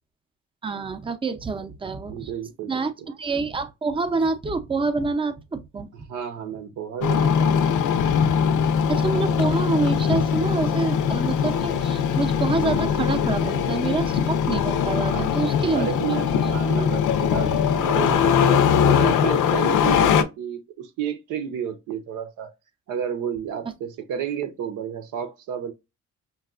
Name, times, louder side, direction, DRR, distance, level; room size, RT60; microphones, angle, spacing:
voice 1, 0.6-2.3 2.7-2.9 3.2-5.9 8.9-15.9 16.3-16.5, right 4 dB, 15° right, 0.5 m, -27 dB
voice 2, 2.1-3.2 6.1-7.7 15.1-15.3 15.7-22.5 22.9-25.7, right 9 dB, 85° right, 0.8 m, -31 dB
Engine starting, 7.0-20.2, left 7 dB, 80° left, 0.6 m, -21 dB
5.6 x 2.3 x 2.4 m
cardioid pair, 90°, 30 cm